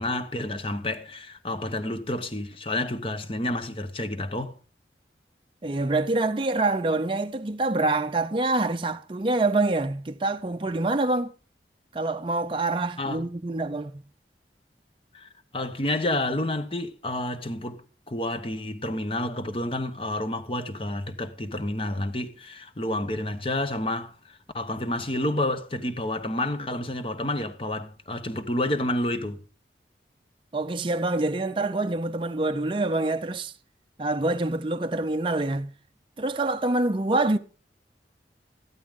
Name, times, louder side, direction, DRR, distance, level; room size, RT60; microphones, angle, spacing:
voice 1, 0.0-4.6 13.0-13.3 15.1-29.4, left 1 dB, 30° left, 1.0 m, -30 dB
voice 2, 5.6-11.3 11.9-14.0 30.5-33.5 34.0-35.7 36.2-37.4, right 2 dB, 30° right, 0.5 m, -26 dB
14.0 x 12.5 x 3.6 m
head